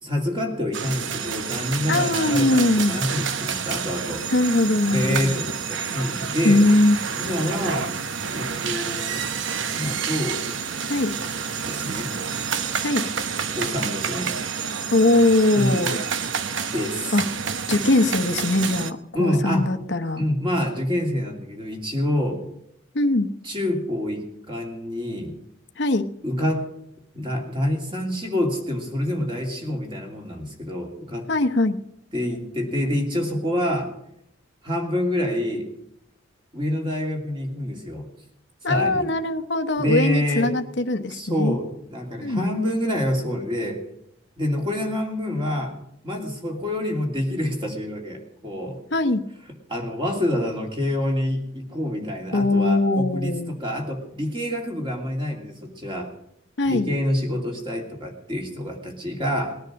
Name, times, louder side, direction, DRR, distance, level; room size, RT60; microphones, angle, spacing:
voice 1, 0.0-4.2 4.9-6.6 7.1-7.9 8.3-9.3 9.7-10.5 11.6-12.1 13.5-14.3 15.5-15.9 16.7-17.2 19.1-19.7 20.1-22.4 23.4-25.3 26.2-26.7 27.1-31.3 32.1-33.9 34.6-35.7 36.5-38.1 38.7-39.1 39.8-40.5 41.1-43.8 44.4-45.8 46.0-48.8 49.7-56.1 56.6-59.6, left 1 dB, 25° right, 1 dB, 2.9 m, -27 dB
sound 1, 0.7-18.9, right 6 dB, 70° right, 0.8 m, -29 dB
voice 2, 1.9-3.0 4.3-5.4 6.4-7.0 10.9-11.1 12.8-13.0 14.9-16.0 17.1-17.2 17.7-20.2 22.9-23.3 25.8-26.0 31.3-31.8 38.6-41.6 42.2-42.6 48.9-49.2 52.3-53.5 56.6-56.9, left 2 dB, 60° left, 7 dB, 0.9 m, -21 dB
19.5 x 10.5 x 6.4 m, 0.77 s
head